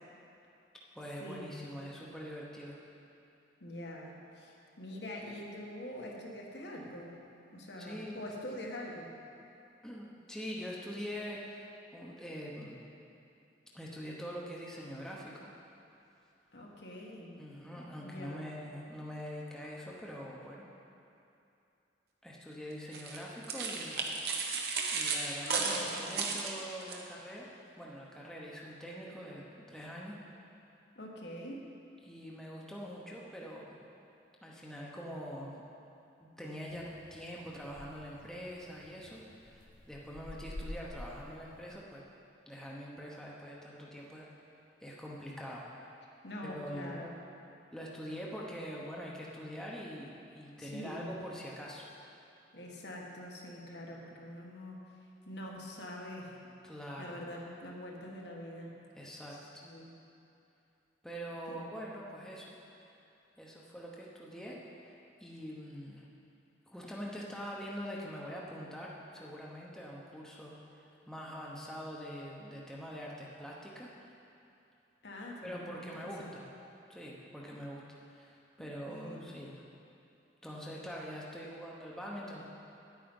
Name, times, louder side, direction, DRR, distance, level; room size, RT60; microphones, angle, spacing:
voice 1, 0.9-2.8 7.8-8.6 9.8-12.8 13.7-15.5 17.4-20.6 22.2-24.6 24.9-27.5 27.8-30.2 32.0-33.8 34.4-35.5 36.2-42.0 42.5-44.3 44.8-45.7 46.4-47.1 47.7-51.8 56.6-57.2 58.9-59.6 61.0-62.6 63.4-66.1 66.7-73.9 75.4-76.5 76.9-77.8 78.1-79.6 80.4-82.4, equal, 5° left, -4 dB, 1.0 m, -44 dB
voice 2, 3.6-7.1 7.5-9.1 16.5-17.3 18.0-18.4 30.9-31.7 46.2-47.1 50.6-51.2 52.5-54.8 55.3-56.4 57.0-58.7 59.6-59.9 61.5-61.6 75.0-75.9 76.2-76.3 78.9-79.3, left 1 dB, 65° left, -2 dB, 1.5 m, -44 dB
sound 1, 22.9-27.0, right 4 dB, 60° right, 1.0 m, -34 dB
sound 2, 36.7-41.7, left 1 dB, 45° left, 0.6 m, -49 dB
10.5 x 8.8 x 5.4 m, 2.7 s
head